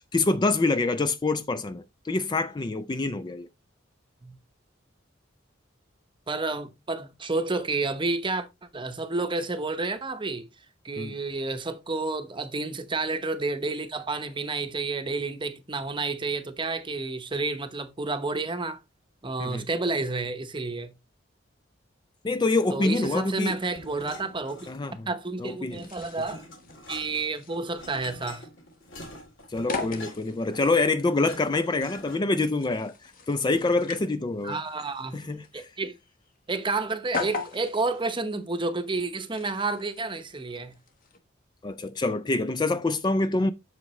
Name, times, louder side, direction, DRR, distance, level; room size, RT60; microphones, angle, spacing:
voice 1, 0.1-3.5 11.0-11.1 19.4-19.6 22.2-23.5 24.7-25.1 25.4-25.9 29.5-32.9 33.3-34.6 35.1-35.7 41.6-43.5, left 3 dB, 20° left, 0.4 m, -26 dB
voice 2, 6.3-8.5 8.7-10.5 10.8-18.8 19.2-20.9 22.7-24.7 25.1-26.4 26.9-28.5 34.4-35.2 35.5-35.9 36.5-40.7, right 3 dB, 25° right, 0.9 m, -30 dB
sound 1, 23.4-25.1 25.4-32.4, left 1 dB, 70° left, 3.2 m, -46 dB
sound 2, 25.7-41.2, left 4 dB, 45° left, 1.3 m, -41 dB
7.7 x 6.4 x 3.1 m
head